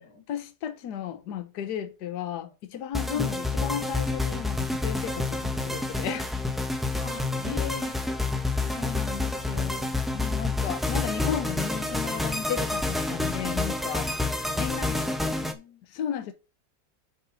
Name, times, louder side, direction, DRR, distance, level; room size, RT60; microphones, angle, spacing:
voice 1, 0.3-6.3 7.5-7.7 8.6-14.1 14.6-14.9 15.9-16.3, left 9 dB, 75° left, 1.4 m, -34 dB
sound 1, 2.9-15.5, left 2 dB, ahead, 0.6 m, -28 dB
voice 2, 3.1-3.6 7.0-8.0 14.8-15.8, left 7 dB, 55° left, 2.9 m, -41 dB
6.9 x 5.9 x 5.0 m
omnidirectional pair, 1.8 m